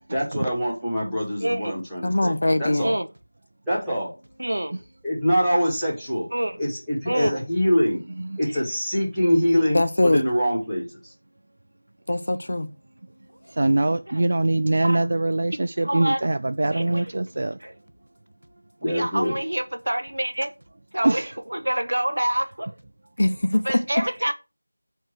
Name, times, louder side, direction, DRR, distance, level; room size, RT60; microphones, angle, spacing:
voice 1, 0.1-2.3 2.6-2.9 3.7-4.1 5.0-6.3 6.6-8.0 8.4-11.1 18.8-19.3, equal, ahead, 2.9 m, -24 dB
voice 2, 1.4-1.8 2.8-3.1 4.4-4.8 6.3-6.6 7.1-7.4 8.5-8.6 13.7-14.3 14.8-15.1 15.8-16.2 16.7-17.1 17.6-17.7 18.9-20.5 20.9-22.7 23.6-24.3, right 1 dB, 75° right, 1.2 m, -27 dB
voice 3, 2.0-2.9 9.7-10.2 12.1-12.7 23.2-23.6, left 1 dB, 50° left, 0.9 m, -22 dB
voice 4, 13.6-17.6 21.0-21.3, right 2 dB, 40° right, 0.4 m, -23 dB
8.0 x 4.6 x 6.7 m
figure-of-eight pair, 175°, 0 cm